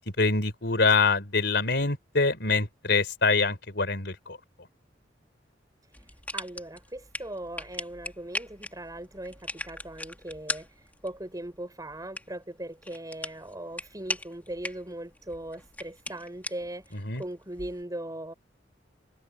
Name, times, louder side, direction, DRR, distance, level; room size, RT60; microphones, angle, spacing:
voice 1, 0.2-4.4 16.9-17.2, left 4 dB, 65° left, 4.6 m, -25 dB
sound 1, 5.9-17.8, left 2 dB, 10° left, 2.7 m, -40 dB
voice 2, 6.3-18.3, right 1 dB, 20° right, 5.5 m, -39 dB
head